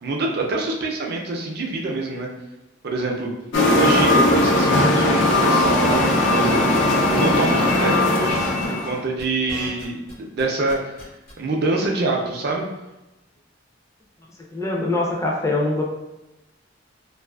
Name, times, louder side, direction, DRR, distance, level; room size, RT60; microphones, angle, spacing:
voice 1, 0.0-2.3 2.8-3.3 3.7-6.6 7.1-8.4 8.7-11.0 11.4-12.7, right 3 dB, 55° right, 0 dB, 0.4 m, -25 dB
sound 1, 3.5-9.0, left 2 dB, 80° left, 0.4 m, -18 dB
sound 2, 5.3-6.0 6.2-6.9 7.1-7.2 7.4-7.7 8.0-10.1 10.4-11.3, left 1 dB, 55° left, 0.8 m, -39 dB
voice 2, 14.5-15.8, left 2 dB, 15° left, -1 dB, 0.4 m, -23 dB
2.4 x 2.3 x 2.3 m, 0.97 s
head